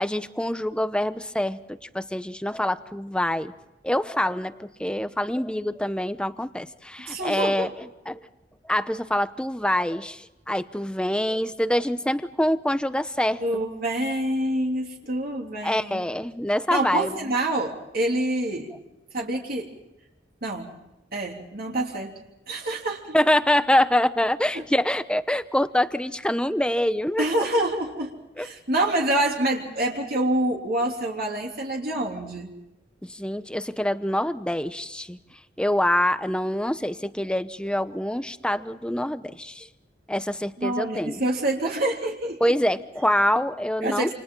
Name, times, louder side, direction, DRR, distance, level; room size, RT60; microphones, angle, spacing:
voice 1, 0.0-3.5 3.8-8.2 8.6-13.4 15.6-17.1 23.1-27.2 28.4-28.5 33.0-35.2 35.6-39.7 40.1-41.2 42.4-44.1, left 1 dB, 5° left, 11 dB, 0.9 m, -25 dB
voice 2, 7.1-7.7 13.4-16.1 16.7-18.7 19.1-19.7 20.4-20.7 21.1-22.1 22.5-23.2 24.5-24.6 27.2-32.5 40.6-42.5 43.8-44.1, right 1 dB, 50° right, -1 dB, 3.2 m, -26 dB
28.5 x 28.0 x 3.9 m, 0.96 s
head